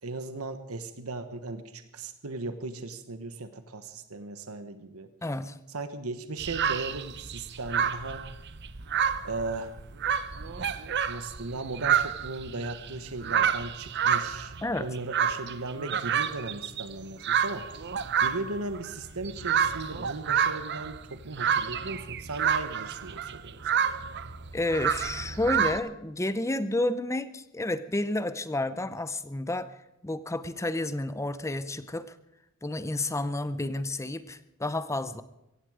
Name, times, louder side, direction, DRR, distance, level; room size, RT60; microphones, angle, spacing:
voice 1, 0.0-5.1 5.7-8.2 9.2-9.7 10.3-10.8 11.0-23.9, right 2 dB, 90° right, 10 dB, 1.3 m, -37 dB
voice 2, 5.2-5.6 14.6-14.9 24.5-29.8 30.0-32.2 32.6-35.2, left 2 dB, 15° left, 13 dB, 0.7 m, -30 dB
sound 1, 6.4-25.8, right 8 dB, 55° right, 0.8 m, -29 dB
17.0 x 15.5 x 5.0 m, 0.91 s
head